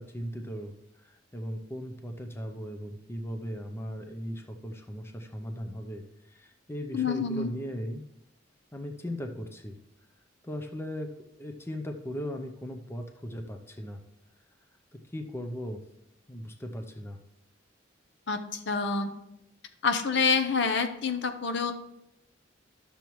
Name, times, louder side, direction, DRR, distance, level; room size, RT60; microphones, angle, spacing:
voice 1, 0.0-8.0 8.7-9.8 10.4-11.1 11.4-14.0 15.1-15.8 16.3-17.2, equal, 10° left, 5 dB, 0.5 m, -38 dB
voice 2, 6.9-7.5 18.3-19.1 19.8-21.7, left 5 dB, 60° left, 7 dB, 0.7 m, -27 dB
11.5 x 6.9 x 3.1 m, 0.85 s
head